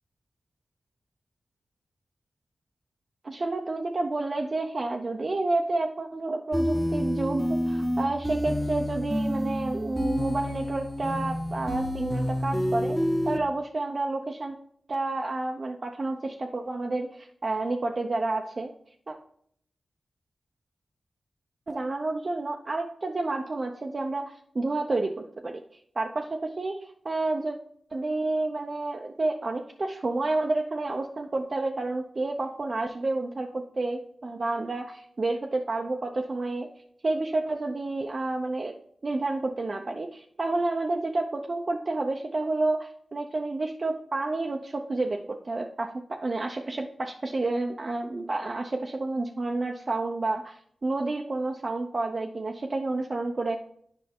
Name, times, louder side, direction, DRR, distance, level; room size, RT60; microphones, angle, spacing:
voice 1, 3.2-13.0 13.2-14.5 14.9-18.7 19.1-19.2 21.7-25.6 26.0-26.8 27.0-27.6 27.9-36.7 37.0-38.7 39.0-50.6 50.8-53.6, right 2 dB, 45° right, 2 dB, 0.6 m, -30 dB
sound 1, 6.5-13.4, equal, ahead, 1.0 m, -28 dB
7.8 x 5.3 x 3.6 m, 0.65 s
wide cardioid pair, 75°, 0 cm